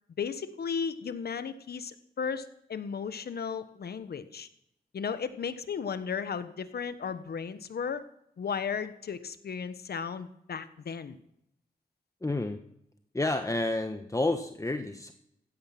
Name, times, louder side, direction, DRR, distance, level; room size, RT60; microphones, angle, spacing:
voice 1, 0.2-4.5 4.9-8.0 8.4-11.2, left 6 dB, 70° left, 12 dB, 1.3 m, -35 dB
voice 2, 12.2-12.6 13.1-15.1, left 2 dB, 20° left, 7 dB, 1.3 m, -30 dB
16.0 x 12.5 x 6.0 m, 0.76 s
cardioid pair, 50°, 17 cm